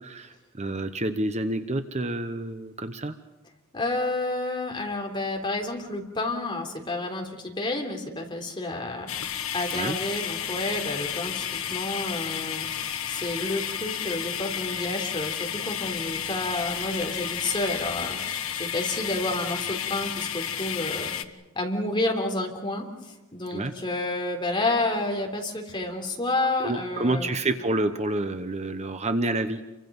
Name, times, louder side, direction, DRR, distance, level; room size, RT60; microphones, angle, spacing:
voice 1, 0.0-3.1 9.7-10.0 23.5-23.7 26.6-29.6, right 2 dB, 30° right, 9 dB, 0.9 m, -28 dB
voice 2, 3.7-9.1 9.5-21.1 21.5-27.3, left 2 dB, 20° left, 1 dB, 3.6 m, -30 dB
sound 1, 9.1-21.2, left 9 dB, 65° left, 1.3 m, -32 dB
29.0 x 24.0 x 5.4 m, 1.1 s
head